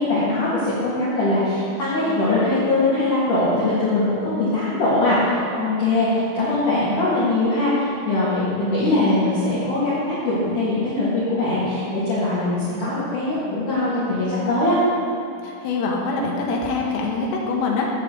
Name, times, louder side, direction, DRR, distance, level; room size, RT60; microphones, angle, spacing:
voice 1, 0.0-14.8, left 2 dB, 55° left, -10 dB, 2.6 m, -21 dB
voice 2, 15.4-17.9, left 3 dB, 85° left, -1 dB, 3.7 m, -24 dB
14.0 x 8.3 x 3.8 m, 2.7 s
omnidirectional pair, 5.8 m